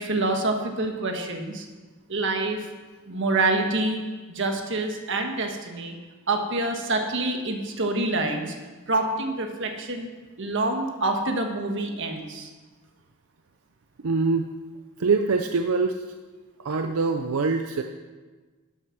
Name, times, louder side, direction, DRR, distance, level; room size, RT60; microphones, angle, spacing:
voice 1, 0.0-1.7 2.1-2.7 3.1-4.0 4.3-6.0 6.3-8.5 8.9-10.1 10.4-12.5, right 2 dB, 60° right, 4 dB, 1.5 m, -26 dB
voice 2, 14.0-14.5 15.0-16.0 16.6-17.8, right 4 dB, 85° right, 6 dB, 0.6 m, -24 dB
12.5 x 7.7 x 6.0 m, 1.3 s
head